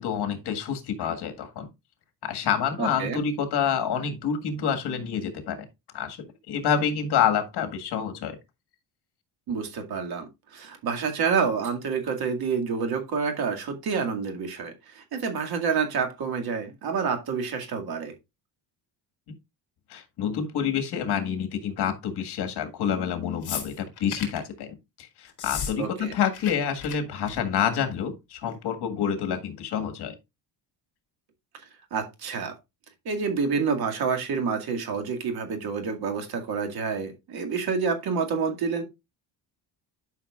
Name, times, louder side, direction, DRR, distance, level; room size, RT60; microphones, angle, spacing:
voice 1, 0.0-1.7 2.2-5.6 5.9-8.4 19.9-30.2, left 8 dB, 65° left, 1.8 m, -28 dB
voice 2, 2.8-3.2 9.5-18.1 25.8-26.1 31.9-32.6 33.1-38.8, right 5 dB, 55° right, 2.2 m, -28 dB
sound 1, 23.4-24.4 25.3-25.7 26.0-26.5 26.8-26.9 27.3-27.6 28.5-28.6, left 7 dB, 40° left, 3.1 m, -34 dB
11.5 x 5.8 x 2.4 m
cardioid pair, 140°, 43 cm